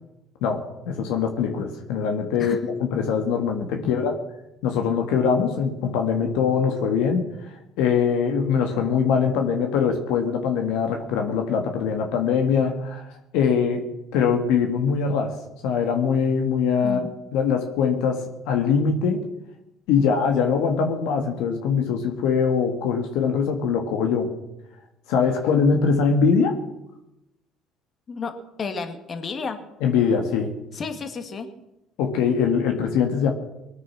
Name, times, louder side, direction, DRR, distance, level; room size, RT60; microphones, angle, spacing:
voice 1, 0.4-2.6 2.9-4.1 4.6-7.3 7.8-13.1 13.3-13.9 14.1-15.3 15.6-17.0 17.3-19.2 19.9-24.3 25.1-26.5 29.8-30.5 32.0-33.3, left 6 dB, 75° left, 4 dB, 1.7 m, -22 dB
voice 2, 28.6-29.6 30.7-31.5, left 5 dB, 40° left, 7 dB, 2.1 m, -32 dB
20.5 x 8.7 x 6.2 m, 0.91 s
supercardioid pair, 70°, 0 cm